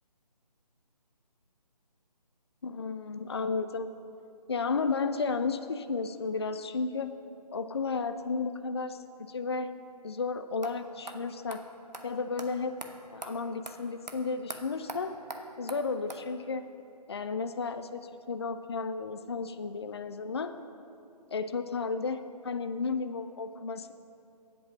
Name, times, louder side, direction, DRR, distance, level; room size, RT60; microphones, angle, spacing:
voice 1, 2.6-3.9 4.5-7.1 7.5-9.0 9.3-9.7 10.0-11.7 12.0-12.8 13.1-15.2 15.6-16.6 17.1-20.6 21.3-23.9, left 4 dB, 40° left, 10 dB, 0.4 m, -33 dB
sound 1, 10.6-10.7 11.1-11.2 11.5-11.6 11.9-12.0 12.4-12.5 12.8-12.9 13.2-13.3 13.7-13.8 14.1-14.2 14.5-14.6 14.9-15.0 15.3-15.4 15.7-15.8 16.1-16.2, right 2 dB, 80° right, 1.1 m, -40 dB
9.3 x 8.2 x 6.1 m, 2.7 s
figure-of-eight pair, 150°, 21 cm